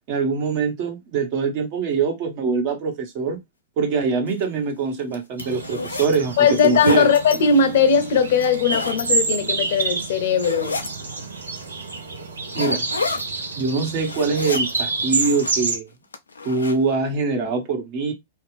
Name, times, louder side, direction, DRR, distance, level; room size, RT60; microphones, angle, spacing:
voice 1, 0.1-3.4 3.8-6.4 6.6-7.1 12.5-12.9 13.5-15.9 16.4-18.1, right 4 dB, 45° right, 1.2 m, -23 dB
sound 1, 4.3-4.4 5.0-6.2 6.5-7.4 8.3-9.0 9.6-10.0 10.4-11.0 11.6-11.7 12.5-13.3 13.8-14.8 15.1-15.7 16.1-16.8, left 4 dB, 90° left, 0.5 m, -30 dB
sound 2, 5.4-15.8, right 4 dB, 85° right, 0.8 m, -28 dB
voice 2, 6.4-10.8, left 5 dB, 60° left, 0.8 m, -19 dB
2.7 x 2.3 x 3.2 m
hypercardioid pair, 110°, 0 cm